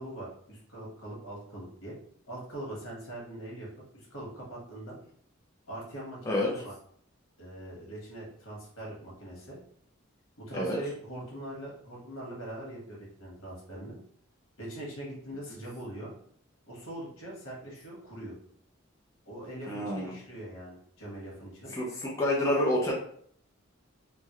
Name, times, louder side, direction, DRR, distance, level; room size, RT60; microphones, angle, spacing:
voice 1, 0.0-1.9 2.3-5.0 5.7-6.7 7.4-9.6 10.4-13.9 14.6-16.1 16.7-18.3 19.3-21.7, right 1 dB, 75° left, -4 dB, 1.4 m, -42 dB
voice 2, 19.7-20.1 21.7-22.9, left 1 dB, 15° left, -4 dB, 0.5 m, -28 dB
3.8 x 2.1 x 3.0 m, 0.63 s
head